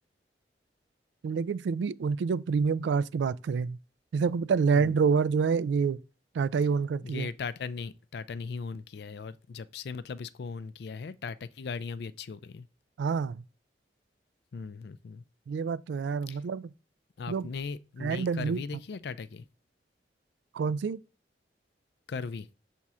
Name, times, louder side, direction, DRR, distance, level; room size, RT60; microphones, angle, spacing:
voice 1, 1.2-3.8 4.1-6.0 6.3-7.3 13.0-13.4 15.5-16.6 17.3-17.5 18.0-18.6 20.5-21.0, right 5 dB, 90° right, 0.3 m, -27 dB
voice 2, 7.0-12.7 14.5-15.2 16.3-16.4 17.2-19.5 22.1-22.5, left 5 dB, 65° left, 0.4 m, -38 dB
6.1 x 3.6 x 4.2 m
head